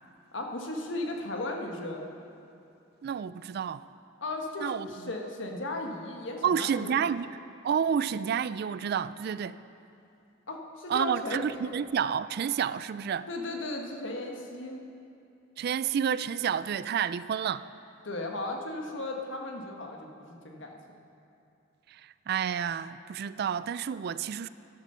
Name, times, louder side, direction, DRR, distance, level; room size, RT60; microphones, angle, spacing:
voice 1, 0.3-2.1 4.2-7.1 10.5-11.7 13.3-14.8 18.0-20.8, left 2 dB, 70° left, 1.4 m, -36 dB
voice 2, 3.0-3.8 4.6-4.9 6.4-7.3 7.6-9.6 10.9-13.3 15.6-17.7 21.9-24.5, right 8 dB, 55° right, 0.3 m, -30 dB
13.5 x 10.5 x 5.6 m
head